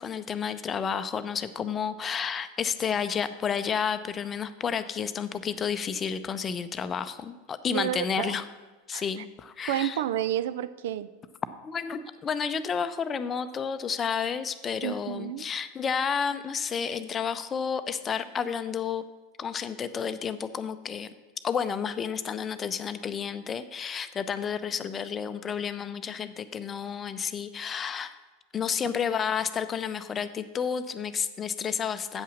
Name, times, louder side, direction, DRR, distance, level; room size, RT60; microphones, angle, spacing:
voice 1, 0.0-8.4 8.9-10.0 11.6-19.0 19.4-21.1 21.4-28.1 28.5-32.2, left 7 dB, 25° left, 11 dB, 0.6 m, -31 dB
voice 2, 7.7-8.4 8.9-9.0 9.7-11.1 14.8-15.4, right 12 dB, 65° right, 15 dB, 0.4 m, -30 dB
8.3 x 5.6 x 7.5 m, 1.3 s
figure-of-eight pair, 85°, 0 cm